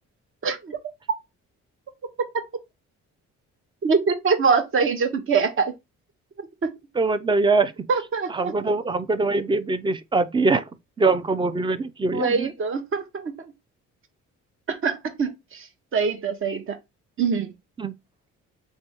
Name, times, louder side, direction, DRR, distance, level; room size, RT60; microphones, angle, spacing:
voice 1, 0.4-0.8 3.8-5.7 6.6-6.7 7.9-8.5 12.1-13.3 14.7-15.7 15.9-16.8 17.2-17.5, right 5 dB, 45° right, 0.8 m, -24 dB
voice 2, 7.0-7.9 8.3-10.6 11.0-12.5 17.8-17.9, right 3 dB, 15° right, 0.4 m, -23 dB
3.4 x 2.1 x 4.3 m
cardioid pair, 90°, 30 cm